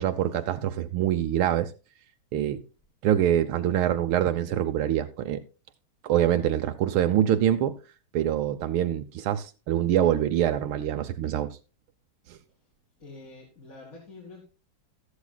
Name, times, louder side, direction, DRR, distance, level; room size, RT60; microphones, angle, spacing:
voice 1, 0.0-1.7 2.3-2.6 3.0-5.4 6.0-7.7 8.1-11.6 12.3-12.4, right 11 dB, 80° right, 1.6 m, -25 dB
voice 2, 13.0-14.4, left 3 dB, 40° left, 2.9 m, -46 dB
13.0 x 13.0 x 2.2 m
omnidirectional pair, 2.3 m